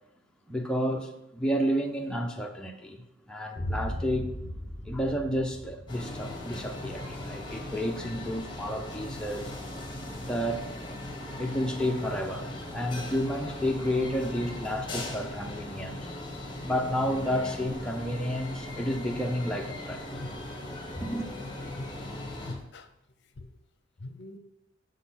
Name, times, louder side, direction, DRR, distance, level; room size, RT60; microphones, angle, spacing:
voice 1, 0.5-4.3 4.8-9.5 10.2-10.7 11.4-16.1 16.6-20.0 21.0-21.3, equal, 5° left, 0.6 m, -31 dB
Boom, 3.6-11.4, equal, 10° right, 2.1 m, -40 dB
sound 1, 5.9-22.6, left 1 dB, 25° left, 1.4 m, -39 dB
voice 2, 21.8-22.9 23.4-23.5 24.0-24.4, left 2 dB, 60° left, 0.6 m, -42 dB
7.4 x 4.1 x 5.7 m
head